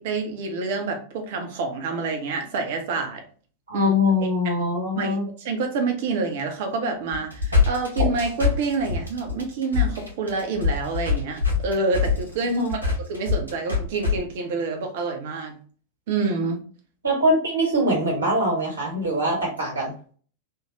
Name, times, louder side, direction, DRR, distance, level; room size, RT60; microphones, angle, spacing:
voice 1, 0.0-3.2 3.7-3.9 5.0-15.6 16.1-16.6, right 3 dB, 55° right, 4 dB, 0.8 m, -27 dB
voice 2, 3.7-5.3 12.5-12.7 17.0-19.9, left 1 dB, 80° right, -2 dB, 1.4 m, -23 dB
sound 1, 7.1-14.1, left 5 dB, 85° left, 1.2 m, -23 dB
3.4 x 2.3 x 3.0 m, 0.42 s
figure-of-eight pair, 90°, 0 cm